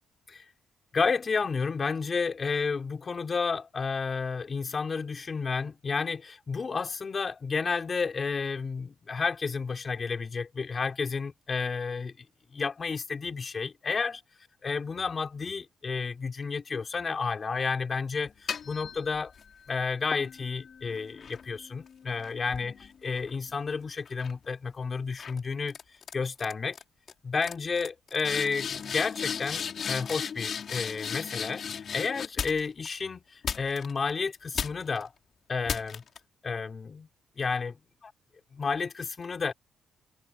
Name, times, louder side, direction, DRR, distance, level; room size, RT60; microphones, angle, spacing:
voice 1, 0.9-12.3 12.5-14.2 14.6-19.3 19.7-22.7 23.0-25.8 26.1-26.8 27.2-35.1 35.5-36.0 36.4-37.1 37.4-38.1 38.5-39.5, left 5 dB, 30° left, 3.9 m, -31 dB
sound 1, 18.3-19.5 20.1-23.7 24.1-24.5 25.2-25.4 25.7-26.1 26.4-26.8 27.1-27.2 27.4-32.9 33.4-34.1 34.5-35.0 35.7-36.2, left 7 dB, 45° left, 3.4 m, -36 dB
cardioid pair, 160°, 0 cm